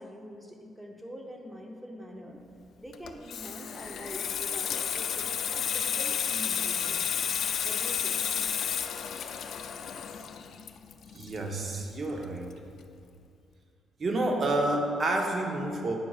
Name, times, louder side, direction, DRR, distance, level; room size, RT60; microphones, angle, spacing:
voice 1, 0.0-2.4 2.8-7.0 7.6-8.2, equal, 10° right, 1 dB, 0.7 m, -44 dB
Water tap faucet / Sink (filling or washing), 2.9-12.2 12.5-12.8, left 8 dB, 65° left, 0.3 m, -32 dB
voice 2, 11.1-12.5 14.0-16.0, right 2 dB, 45° right, 2 dB, 0.8 m, -29 dB
9.3 x 6.0 x 2.4 m, 2.4 s
cardioid pair, 90°, 0 cm